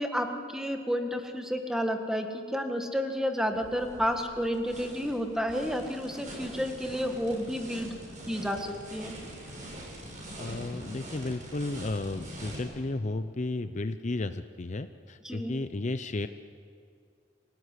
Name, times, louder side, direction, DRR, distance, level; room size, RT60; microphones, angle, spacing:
voice 1, 0.0-7.9 8.3-9.2 15.2-15.5, equal, 5° right, 5 dB, 1.7 m, -31 dB
sound 1, 3.5-12.6, right 1 dB, 45° right, 7.6 m, -44 dB
voice 2, 10.4-16.3, left 2 dB, 40° left, 10 dB, 0.7 m, -33 dB
25.5 x 18.0 x 9.7 m, 2.3 s
head